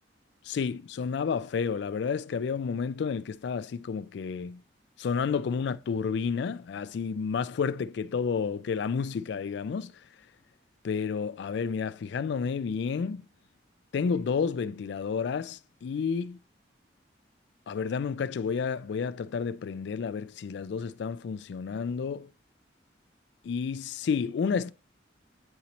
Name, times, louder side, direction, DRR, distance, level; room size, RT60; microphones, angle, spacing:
voice 1, 0.4-4.6 5.0-9.9 10.8-13.2 13.9-16.4 17.7-22.3 23.4-24.7, left 6 dB, 65° left, 0.3 m, -30 dB
8.8 x 4.0 x 2.9 m
head